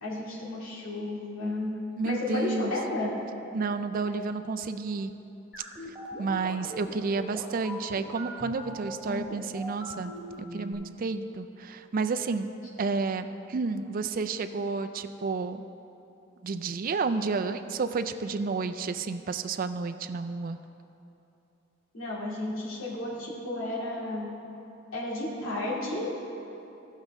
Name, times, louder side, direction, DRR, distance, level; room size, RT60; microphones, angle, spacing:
voice 1, 0.0-3.1 21.9-24.3 24.9-26.1, left 2 dB, 85° left, -5 dB, 2.3 m, -32 dB
voice 2, 2.0-2.7 3.5-5.1 6.2-10.1 10.4-12.5 12.8-15.6 16.4-20.6, right 4 dB, 45° right, 9 dB, 0.4 m, -31 dB
sound 1, 5.5-10.7, equal, 5° right, 2.3 m, -40 dB
16.0 x 6.5 x 3.6 m, 2.9 s
head